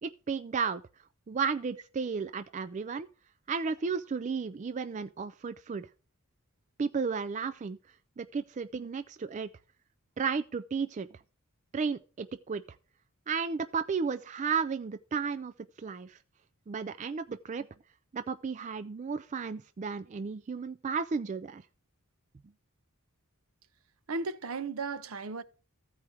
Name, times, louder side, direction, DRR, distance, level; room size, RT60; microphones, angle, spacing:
voice 1, 0.0-0.8 1.3-3.1 3.5-5.9 6.8-7.8 8.2-9.5 10.2-11.1 11.7-12.6 13.3-15.5 15.8-16.2 16.7-17.7 18.1-21.6, right 5 dB, 35° right, 0.3 m, -33 dB
voice 2, 24.1-25.4, right 3 dB, 65° right, 0.7 m, -35 dB
14.5 x 4.9 x 4.4 m
head